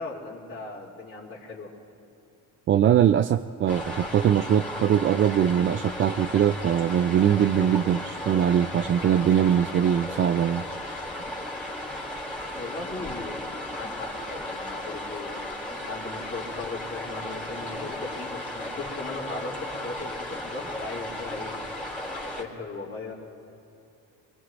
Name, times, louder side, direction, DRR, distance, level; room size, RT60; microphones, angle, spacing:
voice 1, 0.0-1.7 12.5-13.4 13.7-15.5 15.8-21.6 22.2-23.1, left 3 dB, 35° left, -6 dB, 2.8 m, -38 dB
voice 2, 2.7-10.6, right 9 dB, 35° right, 9 dB, 0.4 m, -22 dB
sound 1, 3.7-22.4, left 1 dB, 5° left, 3.4 m, -35 dB
25.0 x 21.5 x 2.6 m, 2.7 s
cardioid pair, 90°, 35 cm